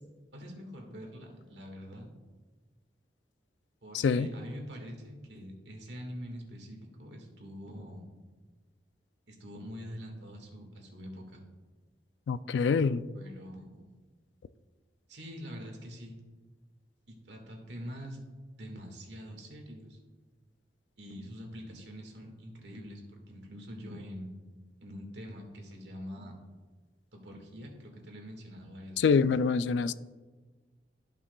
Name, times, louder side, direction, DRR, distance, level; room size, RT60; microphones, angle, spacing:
voice 1, 0.3-2.1 3.8-8.1 9.3-11.4 13.1-13.8 15.1-16.2 17.1-18.2 18.6-20.0 21.0-24.3 24.8-26.3 27.1-29.1, equal, 80° right, 1.7 m, -45 dB
voice 2, 3.9-4.3 12.3-13.0 29.0-29.9, left 5 dB, 85° left, 0.3 m, -25 dB
13.5 x 5.7 x 2.3 m
head